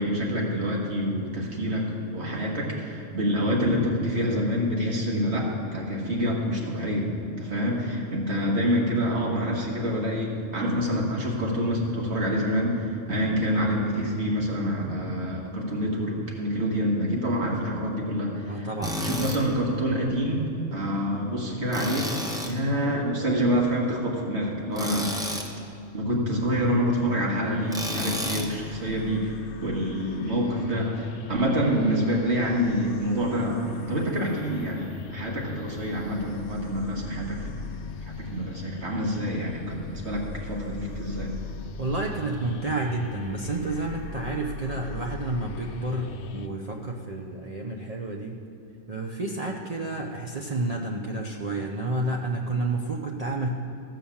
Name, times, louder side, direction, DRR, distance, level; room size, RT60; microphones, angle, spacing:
voice 1, 0.0-7.1 7.4-18.7 19.0-20.5 20.7-22.1 22.4-25.4 25.9-37.6 38.1-41.3, equal, 60° right, -2 dB, 2.0 m, -27 dB
voice 2, 18.5-19.0 41.8-48.4 48.9-53.5, right 2 dB, 40° right, -2 dB, 0.7 m, -30 dB
Tools, 18.8-19.4 21.7-22.6 24.7-25.5 27.7-28.5, equal, 5° right, 0.8 m, -31 dB
sound 1, 27.5-46.5, left 5 dB, 70° left, 0.9 m, -40 dB
14.0 x 5.8 x 7.2 m, 2.6 s
omnidirectional pair, 1.3 m